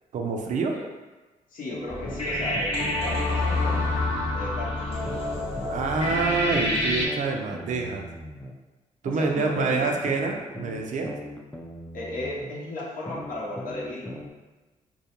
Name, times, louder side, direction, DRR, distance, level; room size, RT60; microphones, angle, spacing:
voice 1, 0.1-0.8 5.7-8.1 9.0-11.1, right 4 dB, 60° right, 2 dB, 0.4 m, -27 dB
voice 2, 1.5-4.0 4.3-5.5 6.4-6.5 9.1-10.0 11.9-14.2, left 1 dB, 70° left, -4 dB, 0.7 m, -35 dB
sound 1, 1.7-4.5 5.1-8.5 9.1-12.5 13.1-14.3, left 1 dB, 10° left, 0.3 m, -40 dB
sound 2, 1.9-7.1, left 1 dB, 40° left, 0.9 m, -27 dB
2.3 x 2.1 x 2.8 m, 1.2 s
supercardioid pair, 60°, 14 cm